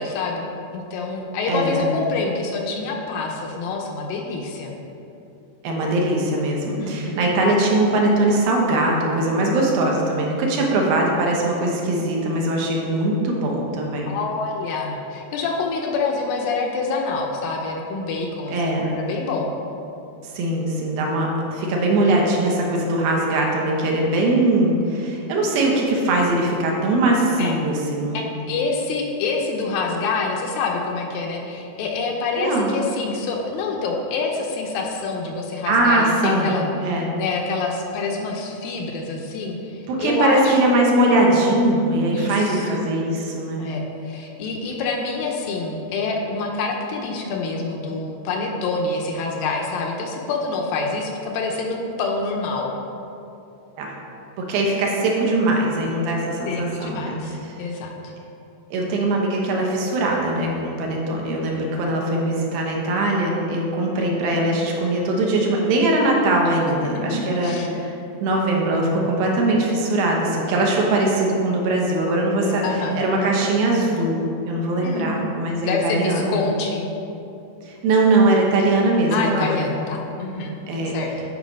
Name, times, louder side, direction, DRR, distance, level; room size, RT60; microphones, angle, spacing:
voice 1, 0.0-4.7 6.8-7.2 14.1-19.5 27.4-27.6 28.1-40.6 42.1-42.9 43.6-52.7 56.5-58.1 66.7-67.7 68.7-69.0 72.6-73.0 74.8-75.2 75.6-76.8 79.1-80.6 80.9-81.1, left 4 dB, 80° left, 1 dB, 2.3 m, -27 dB
voice 2, 1.5-1.8 5.6-14.1 18.5-18.9 20.2-28.3 32.4-32.8 35.7-36.6 36.8-37.1 39.9-43.7 53.8-53.9 54.4-57.2 58.7-67.9 68.2-72.6 73.0-76.3 77.7-79.8 80.7-81.0, right 2 dB, 80° right, -1 dB, 2.8 m, -21 dB
9.4 x 4.8 x 5.2 m, 2.8 s
omnidirectional pair, 4.3 m